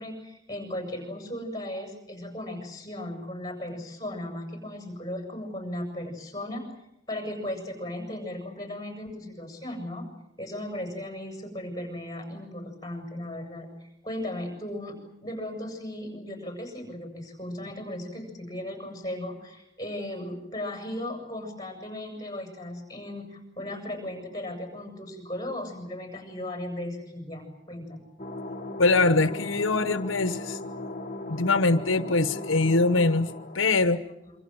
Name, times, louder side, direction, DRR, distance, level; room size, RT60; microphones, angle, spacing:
voice 1, 0.0-10.1 10.4-28.0 34.2-34.3, left 1 dB, 20° left, 4 dB, 7.2 m, -36 dB
sound 1, 28.2-33.8, left 2 dB, 35° left, 1.6 m, -37 dB
voice 2, 28.8-30.6 31.3-34.0, left 3 dB, 80° left, 11 dB, 1.1 m, -23 dB
27.0 x 25.5 x 7.9 m, 0.85 s
head